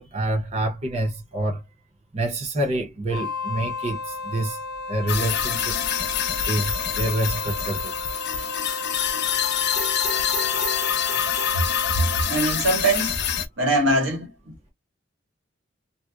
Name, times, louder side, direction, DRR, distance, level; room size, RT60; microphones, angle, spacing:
voice 1, 0.0-1.6 2.1-4.6 4.9-5.8 6.5-7.9, right 1 dB, 35° right, 0.7 m, -27 dB
Wind instrument woodwind instrument, 3.1-12.4, left 3 dB, 70° right, 0.9 m, -33 dB
sound 1, 5.1-13.5, left 8 dB, 60° left, 0.5 m, -26 dB
voice 2, 11.9-13.2 13.6-14.7, right 2 dB, 85° right, 1.5 m, -23 dB
2.8 x 2.0 x 2.2 m
head